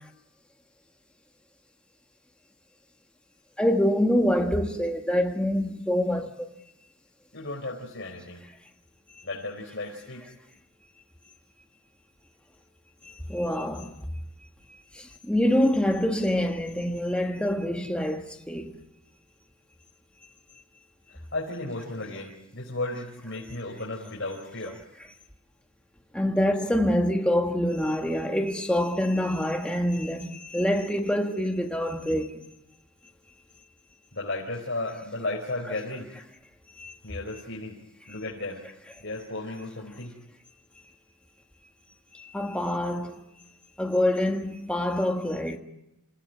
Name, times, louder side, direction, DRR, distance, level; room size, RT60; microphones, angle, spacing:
voice 1, 3.6-6.5 13.3-13.9 14.9-18.8 26.1-32.4 36.8-36.9 42.1-43.2 43.8-45.6, left 1 dB, 5° left, 1.5 m, -26 dB
voice 2, 7.3-8.4 9.2-10.2 21.3-24.8 34.1-36.1 37.0-37.7 38.1-38.6 39.0-40.1, left 2 dB, 55° left, 4.8 m, -34 dB
28.5 x 17.5 x 9.4 m
head